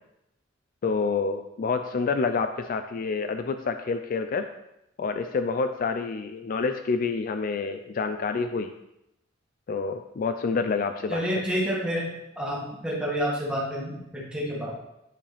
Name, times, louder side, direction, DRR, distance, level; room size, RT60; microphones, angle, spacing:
voice 1, 0.8-4.5 5.0-8.7 9.7-11.2, left 4 dB, 45° left, 8 dB, 0.3 m, -28 dB
voice 2, 11.1-12.1 12.3-14.7, equal, 5° right, -5 dB, 1.8 m, -29 dB
9.4 x 5.0 x 3.4 m, 0.86 s
head